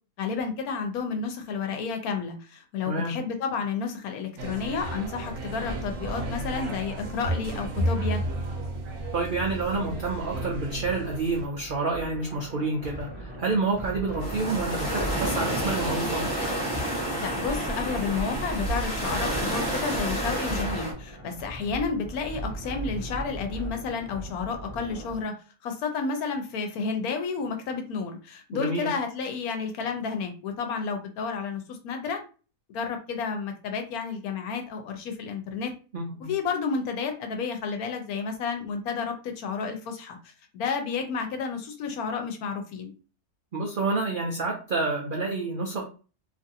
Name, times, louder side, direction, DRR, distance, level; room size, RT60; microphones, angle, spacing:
voice 1, 0.2-8.2 17.2-25.3 25.6-32.2 32.7-35.7 36.2-40.2 40.5-42.9, left 5 dB, 75° left, 5 dB, 1.1 m, -31 dB
sound 1, 4.4-11.5, right 1 dB, 60° right, 0.9 m, -32 dB
sound 2, 5.6-25.2, right 1 dB, 10° right, 0.7 m, -40 dB
voice 2, 9.1-16.3 28.5-28.9 35.9-36.3 43.5-45.8, right 3 dB, 80° right, -1 dB, 0.4 m, -29 dB
Seaside Mono, 14.2-20.9, right 1 dB, 15° left, 1.0 m, -29 dB
2.8 x 2.5 x 2.6 m, 0.36 s
omnidirectional pair, 1.6 m